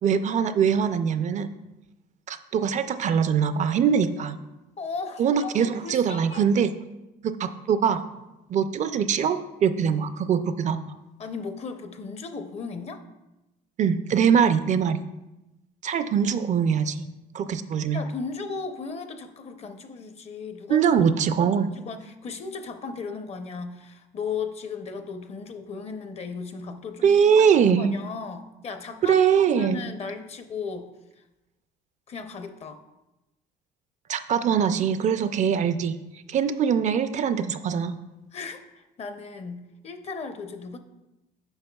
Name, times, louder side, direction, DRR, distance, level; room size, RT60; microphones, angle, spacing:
voice 1, 0.0-1.5 2.3-4.4 5.2-6.7 7.2-8.0 8.5-10.8 13.8-15.0 15.8-17.0 17.3-18.0 20.7-21.7 27.0-27.9 29.0-29.8 34.1-36.0 36.3-38.0, right 7 dB, 45° right, 11 dB, 0.4 m, -22 dB
voice 2, 4.8-6.4 11.2-13.0 17.9-20.9 21.4-27.2 27.5-29.2 29.5-30.9 32.1-32.8 38.3-40.8, left 5 dB, 40° left, 8 dB, 0.6 m, -36 dB
8.8 x 5.6 x 2.3 m, 0.98 s
cardioid pair, 110°, 17 cm